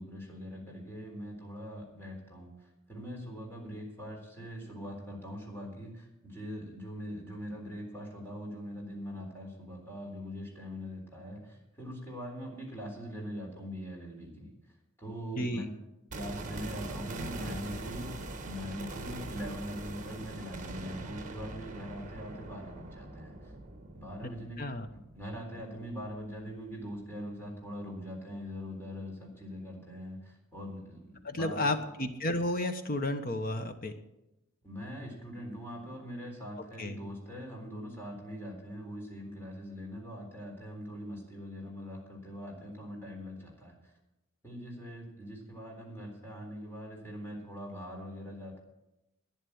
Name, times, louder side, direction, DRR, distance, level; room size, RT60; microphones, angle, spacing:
voice 1, 0.0-15.7 16.1-18.1 18.4-23.5 23.9-24.6 24.9-31.7 34.6-43.9 44.4-48.6, equal, 10° left, -1 dB, 3.7 m, -42 dB
voice 2, 15.4-15.7 24.6-24.9 31.2-33.9 36.8-36.9, left 1 dB, 40° left, 9 dB, 1.1 m, -32 dB
sound 1, 16.1-26.1 26.4-26.5, right 2 dB, 35° right, 1.4 m, -42 dB
11.5 x 10.5 x 8.6 m, 0.92 s
head